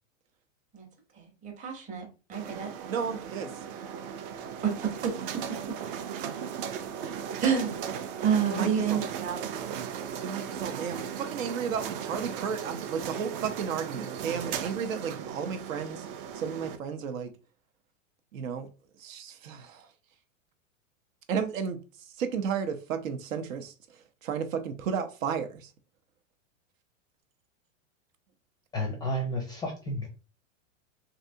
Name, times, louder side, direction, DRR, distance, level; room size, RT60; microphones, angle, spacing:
voice 1, 1.2-2.7 4.6-5.1 7.4-7.9 8.2-9.5, right 7 dB, 20° right, 0.8 m, -29 dB
sound 1, 2.3-16.8, right 8 dB, 45° right, 0.4 m, -37 dB
voice 2, 2.9-3.5 8.4-9.0 10.2-16.0 16.4-17.3 18.3-18.7 19.0-19.9 21.3-21.8 22.2-23.7 24.2-25.7, right 7 dB, 80° right, 0.7 m, -33 dB
voice 3, 28.7-30.1, equal, 10° left, 0.4 m, -31 dB
3.2 x 2.7 x 2.6 m
supercardioid pair, 140°, 39 cm